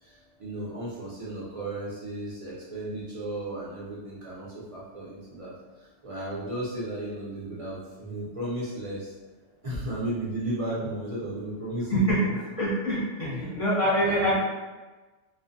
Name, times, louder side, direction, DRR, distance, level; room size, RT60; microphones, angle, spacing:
voice 1, 0.0-5.5 6.0-9.1 9.6-12.3 13.2-13.5 14.0-14.4, right 1 dB, 55° right, -7 dB, 0.3 m, -34 dB
voice 2, 12.6-14.4, equal, 35° left, -9 dB, 0.6 m, -25 dB
2.4 x 2.1 x 2.6 m, 1.2 s
omnidirectional pair, 1.3 m